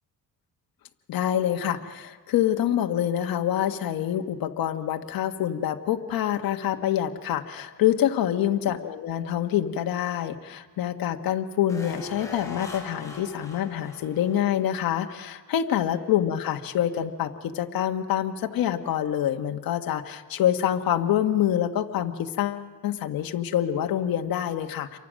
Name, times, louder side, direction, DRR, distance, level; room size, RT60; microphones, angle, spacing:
voice 1, 1.1-25.0, left 11 dB, 75° left, 5 dB, 1.5 m, -26 dB
sound 1, 11.7-14.9 15.1-15.2, left 2 dB, 10° left, 5.8 m, -41 dB
29.0 x 24.0 x 6.4 m, 1.4 s
cardioid pair, 125°, 36 cm